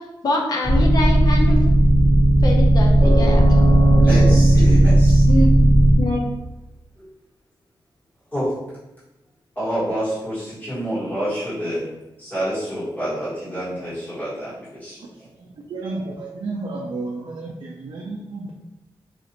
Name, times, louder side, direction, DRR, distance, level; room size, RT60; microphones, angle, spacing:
voice 1, 0.2-1.6 2.4-3.5 5.3-6.2, left 1 dB, 45° left, 0 dB, 0.6 m, -24 dB
sound 1, 0.6-6.0, right 1 dB, 15° right, 0.8 m, -14 dB
voice 2, 4.0-5.2 7.0-7.1 8.3-8.5 9.5-11.8 12.2-15.0, equal, 20° left, -11 dB, 1.3 m, -27 dB
voice 3, 15.7-18.5, right 3 dB, 60° right, -1 dB, 0.4 m, -31 dB
4.1 x 2.5 x 2.9 m, 0.99 s
wide cardioid pair, 145°, 9 cm